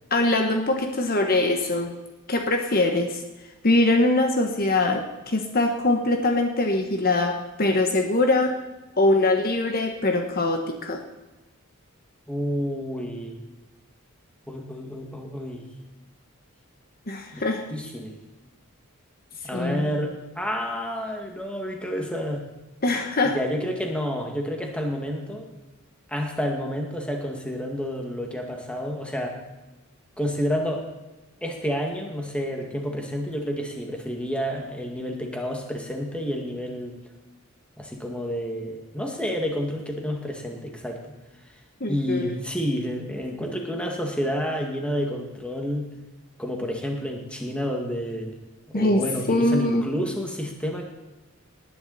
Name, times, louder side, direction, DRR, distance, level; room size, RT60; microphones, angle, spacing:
voice 1, 0.1-1.9 2.3-3.2 3.6-8.5 9.0-11.0 17.1-17.6 19.5-19.9 22.8-23.4 41.8-42.3 48.7-49.0 49.3-49.8, left 2 dB, 45° left, 4 dB, 1.3 m, -22 dB
voice 2, 12.3-13.4 14.5-15.6 17.3-18.2 19.4-22.4 23.2-25.5 26.1-29.4 30.2-30.8 31.4-37.0 37.8-41.0 41.9-45.9 46.4-48.4 48.7-50.9, equal, 5° left, 1 dB, 2.1 m, -29 dB
19.0 x 11.0 x 4.2 m, 1.1 s
head